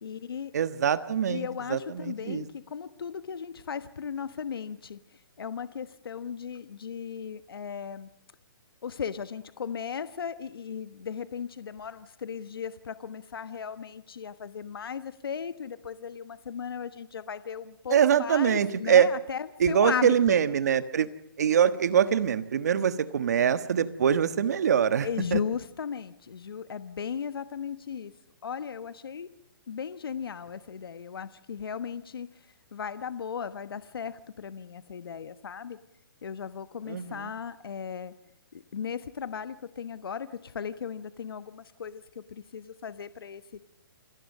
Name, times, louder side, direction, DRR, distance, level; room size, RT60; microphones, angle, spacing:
voice 1, 0.0-0.5 1.3-8.1 8.8-20.4 25.0-28.1 28.4-29.3 29.7-35.8 36.2-38.1 38.5-43.6, left 7 dB, 80° left, 14 dB, 1.2 m, -36 dB
voice 2, 0.5-2.5 17.9-19.1 19.6-21.1 21.4-25.4 36.9-37.3, right 8 dB, 45° right, 14 dB, 1.4 m, -24 dB
27.5 x 18.0 x 6.6 m, 0.82 s
hypercardioid pair, 180°, 12 cm